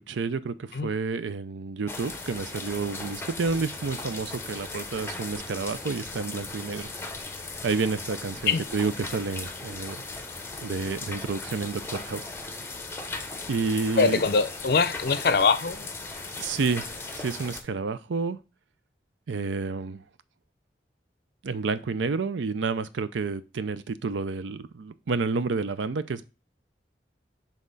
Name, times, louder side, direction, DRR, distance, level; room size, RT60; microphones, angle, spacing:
voice 1, 0.0-6.9 7.6-10.0 10.6-12.2 13.5-14.2 16.4-18.4 19.3-20.0 21.4-26.3, right 4 dB, 85° right, 0.5 m, -30 dB
sound 1, 1.9-17.6, left 3 dB, 15° left, 0.6 m, -38 dB
voice 2, 14.0-15.9, left 5 dB, 55° left, 0.5 m, -23 dB
7.5 x 3.6 x 3.9 m
head